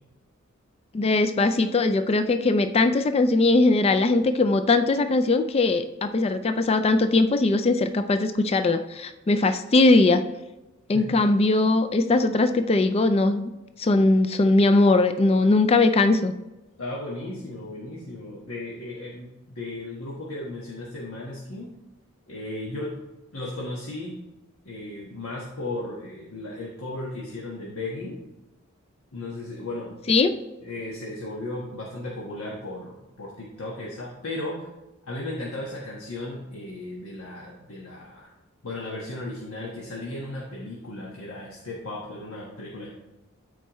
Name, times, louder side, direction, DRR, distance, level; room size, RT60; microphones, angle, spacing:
voice 1, 0.9-10.2 10.9-13.4 13.8-16.3 30.1-30.4, left 2 dB, 30° left, 9 dB, 0.3 m, -20 dB
voice 2, 16.8-21.7 22.3-22.9 23.3-24.1 24.6-28.2 29.1-29.9 30.6-34.7 35.1-38.3 38.6-42.9, left 2 dB, 85° left, -4 dB, 1.3 m, -35 dB
13.0 x 4.5 x 3.1 m, 1.0 s
head